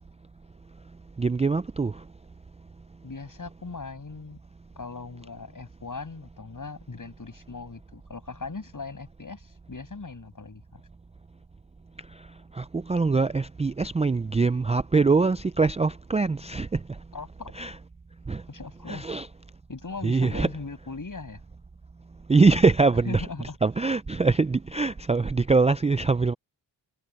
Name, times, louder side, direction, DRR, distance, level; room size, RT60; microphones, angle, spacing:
voice 1, 1.2-1.9 12.6-16.8 17.6-17.7 18.3-18.4 18.9-19.3 20.0-20.5 22.3-23.3 23.6-26.3, right 4 dB, 15° right, 0.4 m, -23 dB
voice 2, 3.0-4.4 4.7-10.8 17.1-17.5 18.5-19.2 19.7-21.4 23.0-23.6, left 4 dB, 45° left, 6.9 m, -39 dB
cardioid pair, 65°, 43 cm